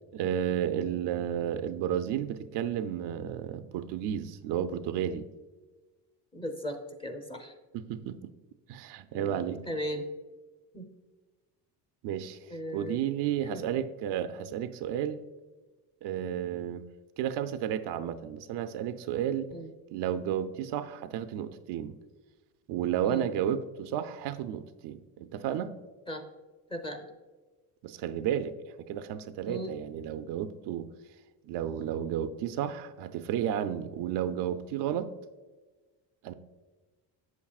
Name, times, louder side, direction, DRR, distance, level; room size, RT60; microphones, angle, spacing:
voice 1, 0.1-5.3 7.7-8.3 8.7-9.6 12.0-12.4 12.7-15.2 16.0-16.8 17.2-19.5 19.9-21.9 22.7-25.7 27.8-28.5 28.9-30.9 31.5-35.1 36.2-36.3, right 10 dB, 75° right, 10 dB, 0.6 m, -32 dB
voice 2, 6.3-7.5 9.1-10.1 10.7-10.9 12.5-13.0 13.5-13.6 19.5-19.7 23.0-23.3 26.1-26.2 26.7-27.1 29.4-29.7, equal, 15° left, 6 dB, 0.8 m, -37 dB
8.1 x 7.2 x 2.4 m, 1.2 s
cardioid pair, 105°, 41 cm